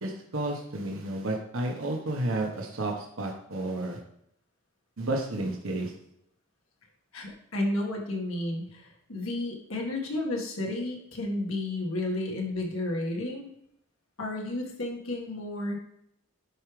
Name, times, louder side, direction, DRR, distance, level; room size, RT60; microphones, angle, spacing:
voice 1, 0.0-4.0 5.0-5.9, right 2 dB, 80° right, 1 dB, 1.2 m, -31 dB
voice 2, 7.1-13.5 14.2-15.8, left 2 dB, 80° left, 0 dB, 1.7 m, -32 dB
11.0 x 4.9 x 3.3 m, 0.75 s
head